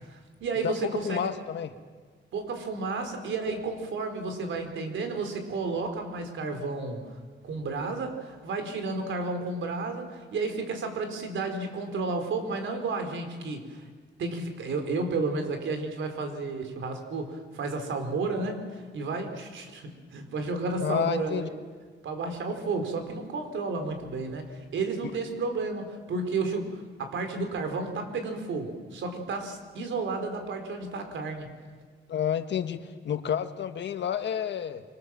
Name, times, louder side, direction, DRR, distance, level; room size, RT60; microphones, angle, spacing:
voice 1, 0.1-1.3 2.3-7.0 7.4-13.8 14.2-21.5 22.0-31.5, right 3 dB, 80° right, 6 dB, 4.3 m, -32 dB
voice 2, 0.6-1.7 20.8-21.5 32.1-34.8, left 9 dB, 65° left, 9 dB, 1.6 m, -30 dB
26.0 x 25.5 x 7.6 m, 1.5 s
wide cardioid pair, 145°, 20 cm